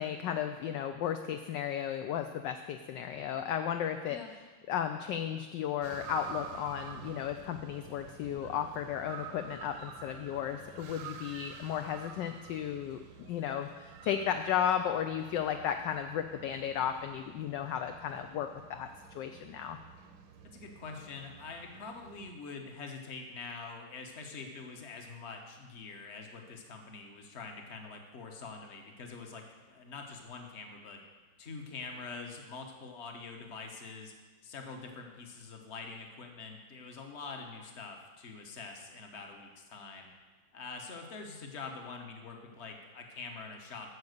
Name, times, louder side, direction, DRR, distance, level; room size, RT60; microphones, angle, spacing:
voice 1, 0.0-4.2 4.7-13.0 13.3-18.9 19.1-19.8, left 9 dB, 75° left, 7 dB, 1.1 m, -34 dB
sound 1, 5.8-22.3, right 6 dB, 70° right, 1.4 m, -49 dB
voice 2, 20.4-31.0 31.4-34.1 34.4-40.1 40.5-43.9, left 4 dB, 40° left, 3 dB, 1.1 m, -45 dB
9.5 x 7.1 x 6.6 m, 1.3 s
omnidirectional pair, 2.3 m